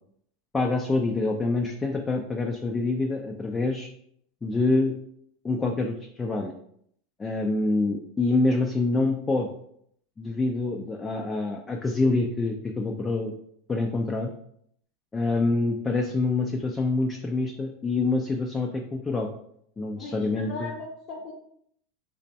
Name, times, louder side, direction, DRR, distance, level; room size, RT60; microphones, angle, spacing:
voice 1, 0.5-3.9 4.4-5.0 5.4-6.5 7.2-9.5 10.2-13.3 13.7-14.3 15.1-19.3 19.8-20.7, left 3 dB, 15° left, 1 dB, 0.4 m, -26 dB
voice 2, 20.0-21.3, left 3 dB, 50° left, -4 dB, 0.8 m, -38 dB
3.2 x 2.0 x 4.0 m, 0.69 s
figure-of-eight pair, 85°, 0 cm